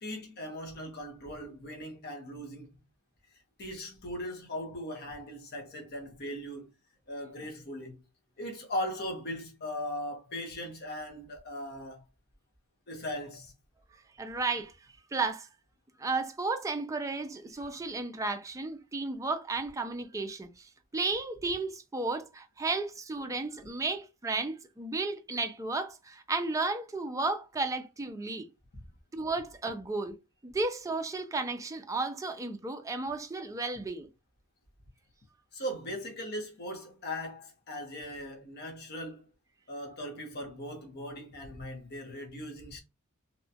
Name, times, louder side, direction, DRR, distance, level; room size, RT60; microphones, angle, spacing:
voice 1, 0.0-2.7 3.6-6.7 7.1-8.0 8.4-12.0 12.9-13.5 28.7-28.8 35.5-39.3 39.7-42.8, left 1 dB, 50° left, 1.0 m, -39 dB
voice 2, 14.2-14.7 15.1-15.5 16.0-28.5 29.1-30.1 30.4-34.1, right 3 dB, 15° right, 0.4 m, -33 dB
2.8 x 2.3 x 2.8 m
head